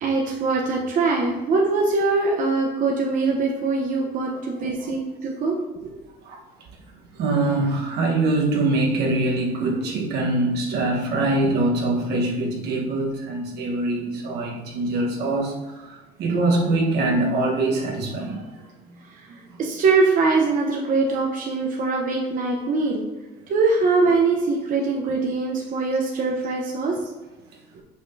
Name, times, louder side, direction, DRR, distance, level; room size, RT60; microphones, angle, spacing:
voice 1, 0.0-5.6 5.8-6.0 19.0-19.1 19.6-23.0 23.5-27.0 27.7-27.8, right 3 dB, 55° right, -1 dB, 0.9 m, -22 dB
voice 2, 7.2-18.6 19.3-19.4, right 2 dB, 75° right, 0 dB, 1.3 m, -23 dB
6.4 x 5.6 x 2.7 m, 1.2 s
cardioid pair, 110°, 17 cm